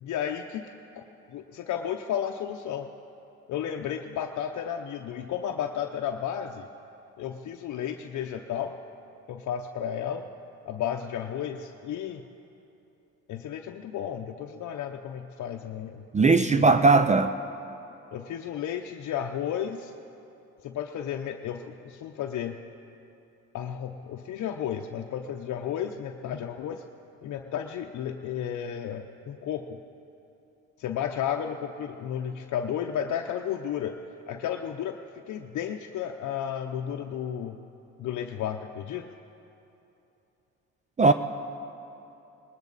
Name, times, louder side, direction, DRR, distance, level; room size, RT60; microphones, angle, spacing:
voice 1, 0.0-1.0 1.3-2.9 3.5-6.7 7.2-8.7 9.3-10.3 10.7-12.2 13.3-16.7 18.1-19.9 20.6-22.6 23.5-26.8 27.2-29.8 30.8-34.0 34.3-35.0 35.3-37.6 38.0-39.1, left 9 dB, 70° left, 3 dB, 0.7 m, -33 dB
voice 2, 16.1-17.3 41.0-41.1, right 3 dB, 25° right, 10 dB, 0.5 m, -19 dB
19.5 x 18.0 x 4.0 m, 2.9 s
cardioid pair, 90°, 30 cm